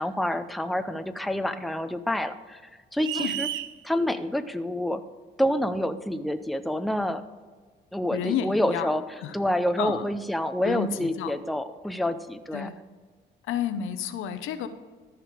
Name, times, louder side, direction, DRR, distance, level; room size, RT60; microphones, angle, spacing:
voice 1, 0.0-2.6 2.9-3.5 3.8-5.0 5.4-7.2 7.9-9.1 9.3-12.7, left 1 dB, ahead, 9 dB, 0.5 m, -27 dB
sound 1, 3.0-3.7, right 11 dB, 75° right, 0.5 m, -31 dB
voice 2, 8.1-8.9 9.2-9.4 9.8-10.0 10.6-11.3 12.5-12.8 13.5-14.7, left 8 dB, 85° left, 10 dB, 0.7 m, -30 dB
13.5 x 5.0 x 4.9 m, 1.5 s
cardioid pair, 90°, 20 cm